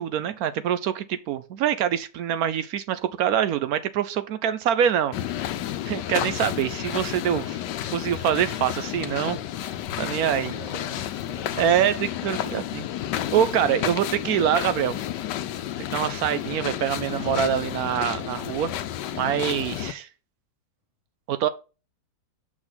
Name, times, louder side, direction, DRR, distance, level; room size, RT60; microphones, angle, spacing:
voice 1, 0.0-5.1 5.8-7.6 7.9-9.4 10.0-10.5 11.6-12.9 13.3-15.0 15.9-18.7 19.1-20.1 21.3-21.5, right 9 dB, 70° right, 0.9 m, -25 dB
sound 1, 5.1-19.9, left 11 dB, 75° left, 1.2 m, -31 dB
voice 2, 10.0-12.4, right 2 dB, 15° right, 3.0 m, -44 dB
6.3 x 6.1 x 3.8 m
omnidirectional pair, 2.0 m